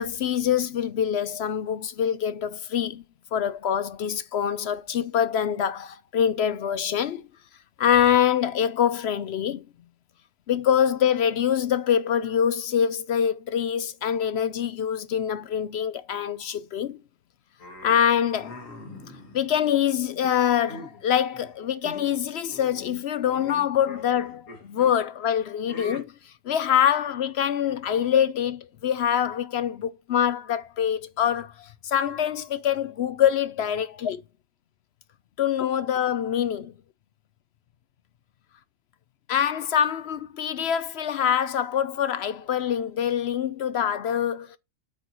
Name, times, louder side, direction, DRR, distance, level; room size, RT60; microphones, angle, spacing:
voice 1, 0.0-3.0 3.3-7.2 7.8-9.6 10.5-17.0 17.8-18.6 19.3-34.2 35.4-36.7 39.3-44.6, left 9 dB, 60° left, 0.8 m, -25 dB
sound 1, 17.6-19.8 20.2-21.0 21.3-21.6 21.8-22.2 22.5-24.9 25.7-26.0, left 2 dB, 80° left, 2.2 m, -43 dB
8.5 x 4.6 x 3.9 m
omnidirectional pair, 1.4 m